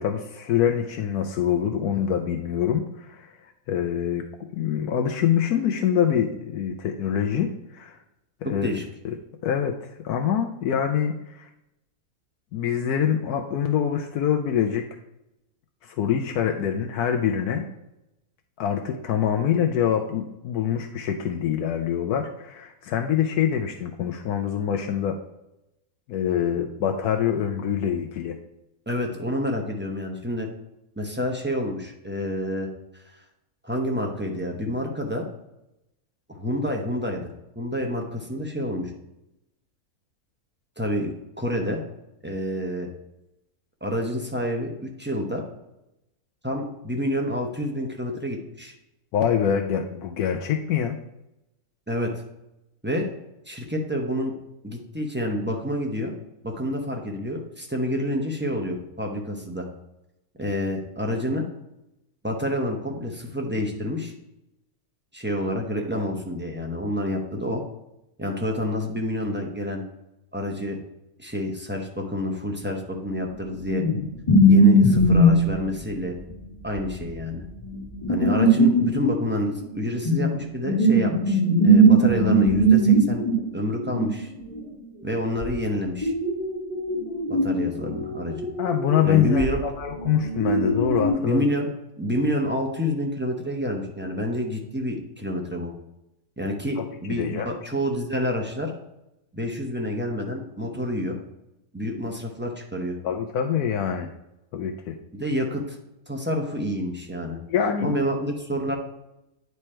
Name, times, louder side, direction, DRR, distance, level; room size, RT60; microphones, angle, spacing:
voice 1, 0.0-4.3 4.5-8.0 8.4-8.7 9.0-9.1 9.4-11.5 12.5-14.9 15.8-17.7 18.6-25.2 26.1-28.4 49.1-51.0 88.6-91.4 96.8-97.5 103.0-104.1 104.5-105.0 107.5-108.0, left 9 dB, 80° left, 4 dB, 1.1 m, -25 dB
voice 2, 8.4-8.8 28.9-30.5 31.0-33.0 33.6-35.3 36.3-37.3 37.6-38.9 40.8-41.8 42.2-42.9 43.8-45.4 46.4-48.7 51.9-52.2 52.8-53.1 53.5-54.3 54.6-56.1 56.4-59.7 60.4-61.4 62.2-64.1 65.1-67.6 68.2-69.8 70.3-70.8 71.2-73.8 74.5-76.2 76.6-77.4 78.1-83.2 83.5-84.3 85.0-86.1 87.3-88.3 89.0-89.6 91.2-91.7 92.0-95.7 96.4-98.7 99.3-101.1 101.7-103.0 105.1-105.8 106.1-107.4 107.8-108.8, equal, 10° right, 1 dB, 0.7 m, -28 dB
sound 1, 73.7-74.0 74.3-75.6 75.9-76.0 76.2-76.3 76.8-80.3 80.6-83.4 83.8-84.6 85.4-85.5 86.0-91.1, right 1 dB, 25° left, 1.8 m, -20 dB
9.5 x 3.3 x 4.3 m, 0.91 s
omnidirectional pair, 1.6 m